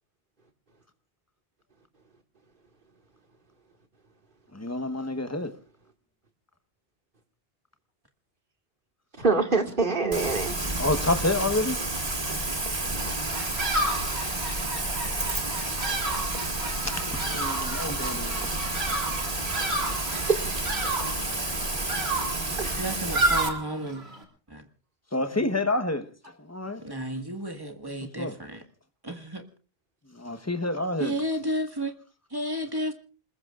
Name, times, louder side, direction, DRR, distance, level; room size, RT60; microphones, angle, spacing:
voice 1, 4.5-5.5 10.8-11.8 16.8-18.7 25.1-26.8 28.2-28.3 30.1-31.1, left 2 dB, 15° left, 1.1 m, -29 dB
voice 2, 9.2-10.5 18.5-18.6 20.1-20.5 22.6-22.8 25.3-25.4, right 4 dB, 55° right, 2.2 m, -26 dB
Rain, 10.1-23.5, right 2 dB, 40° right, 2.0 m, -30 dB
Bird vocalization bird call bird song, 13.3-24.2, right 2 dB, 85° right, 3.1 m, -31 dB
voice 3, 22.8-24.1 24.5-24.6 26.8-28.6 29.0-29.4 31.0-31.9 32.3-32.9, equal, 20° right, 1.8 m, -32 dB
28.0 x 21.0 x 2.5 m
omnidirectional pair, 1.0 m